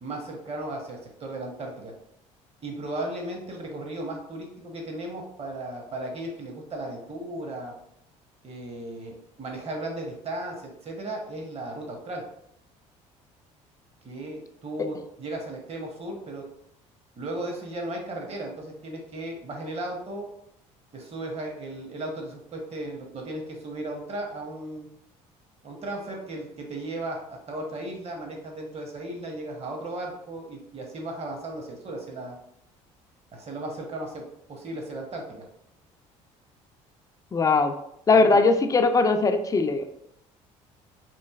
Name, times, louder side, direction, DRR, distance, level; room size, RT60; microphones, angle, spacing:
voice 1, 0.0-1.9 2.6-7.7 8.4-12.2 14.0-16.4 17.2-20.3 20.9-24.9 25.6-32.4 33.3-34.2 34.5-35.4 38.1-38.4, right 1 dB, 40° right, 1 dB, 0.9 m, -36 dB
voice 2, 37.3-37.7 38.1-39.8, left 3 dB, 20° left, 7 dB, 0.4 m, -20 dB
3.0 x 2.5 x 2.3 m, 0.75 s
hypercardioid pair, 70°, 16 cm